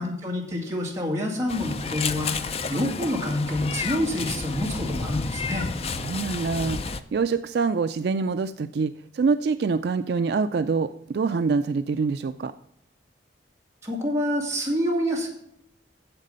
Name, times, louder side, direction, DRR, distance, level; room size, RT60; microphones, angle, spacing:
voice 1, 0.0-5.7 13.8-15.3, left 1 dB, 15° right, -2 dB, 2.2 m, -27 dB
Meow, 1.5-7.0, left 4 dB, 30° left, 0.4 m, -31 dB
voice 2, 5.9-12.5, right 4 dB, 55° right, 10 dB, 0.3 m, -25 dB
8.9 x 7.4 x 5.4 m, 0.76 s
head